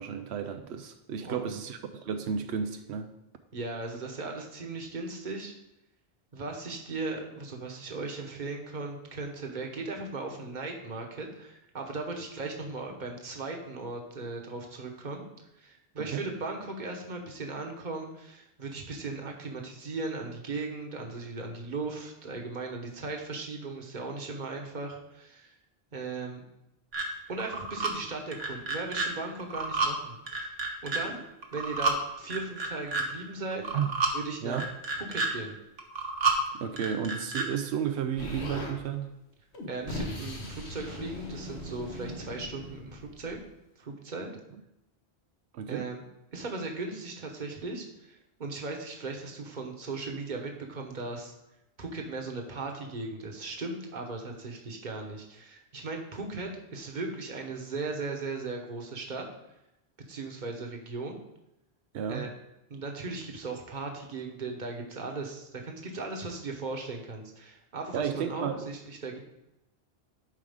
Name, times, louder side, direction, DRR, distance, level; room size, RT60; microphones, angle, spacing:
voice 1, 0.0-3.1 16.0-16.3 33.7-33.9 34.4-34.7 36.5-39.1 45.5-45.9 61.9-62.3 67.9-68.7, right 7 dB, 90° right, 7 dB, 0.9 m, -32 dB
voice 2, 1.2-1.5 3.5-5.5 6.3-15.2 15.6-25.5 25.9-26.4 27.3-30.6 30.8-31.2 31.5-33.6 34.1-34.7 35.1-35.6 39.7-43.4 43.8-44.3 45.7-46.1 46.3-51.3 51.8-59.3 60.1-61.2 62.1-62.3 62.7-69.2, right 3 dB, 45° right, 2 dB, 1.2 m, -37 dB
sound 1, 26.9-27.1 27.4-27.9 28.3-29.1 29.4-29.9 30.3-31.0 31.4-32.0 32.3-33.0 33.5-34.1 34.5-35.3 35.8-36.4 36.8-37.5, right 3 dB, 65° right, 1.4 m, -29 dB
Explosion, 38.2-38.8 39.5-43.4, left 2 dB, 85° left, 1.6 m, -39 dB
11.0 x 4.8 x 3.6 m, 0.88 s
omnidirectional pair, 1.1 m